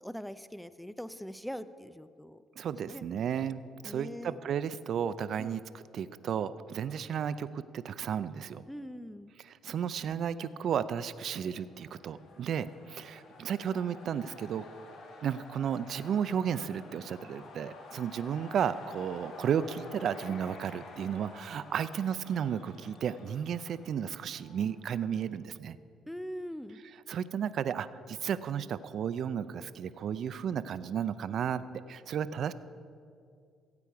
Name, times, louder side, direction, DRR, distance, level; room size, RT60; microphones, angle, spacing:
voice 1, 0.0-2.4 2.9-3.0 3.8-4.4 5.4-5.6 8.7-9.3 26.1-26.8, equal, 5° left, 13 dB, 0.5 m, -42 dB
voice 2, 2.6-5.6 5.9-8.6 9.4-14.6 15.2-25.8 27.1-32.5, right 8 dB, 65° right, 14 dB, 0.4 m, -33 dB
sound 1, 11.4-25.1, left 3 dB, 75° left, 1.6 m, -50 dB
15.5 x 8.4 x 4.7 m, 2.2 s
supercardioid pair, 70°, 0 cm